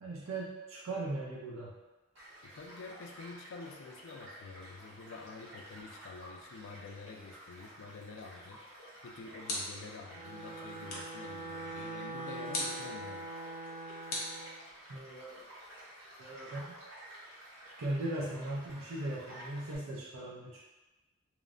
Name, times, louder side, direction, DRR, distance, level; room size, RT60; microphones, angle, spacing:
voice 1, 0.0-1.7 14.9-15.4 16.2-16.7 17.1-17.2 17.8-20.6, right 2 dB, 75° right, -6 dB, 0.5 m, -38 dB
Child speech kid speaking / Stream / Car passing by, 2.2-19.8, right 1 dB, 60° right, 0.9 m, -52 dB
voice 2, 2.4-8.6 9.0-13.3, left 4 dB, 65° left, 3 dB, 0.3 m, -48 dB
sound 1, 8.8-10.0 10.9-11.2 12.5-12.9 14.1-15.0, left 2 dB, 45° left, 0.7 m, -39 dB
Bowed string instrument, 10.0-14.6, right 2 dB, 10° right, 0.6 m, -43 dB
2.9 x 2.0 x 2.5 m, 1.1 s
head